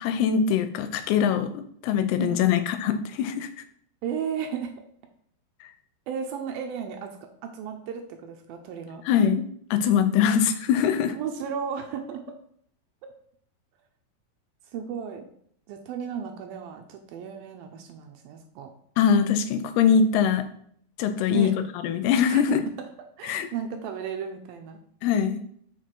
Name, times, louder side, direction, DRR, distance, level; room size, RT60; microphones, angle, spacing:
voice 1, 0.0-3.5 9.1-9.5 9.7-11.1 19.0-20.4 21.0-21.5 21.8-22.6 23.2-23.5 25.0-25.4, left 7 dB, 85° left, 9 dB, 2.7 m, -22 dB
voice 2, 4.0-4.7 6.1-9.0 10.3-10.5 11.1-12.4 13.0-13.1 14.7-15.3 15.7-18.7 21.3-21.5 22.3-22.6 23.2-24.8, right 7 dB, 80° right, 5 dB, 2.3 m, -34 dB
6.7 x 4.6 x 4.6 m, 0.63 s
omnidirectional pair, 4.6 m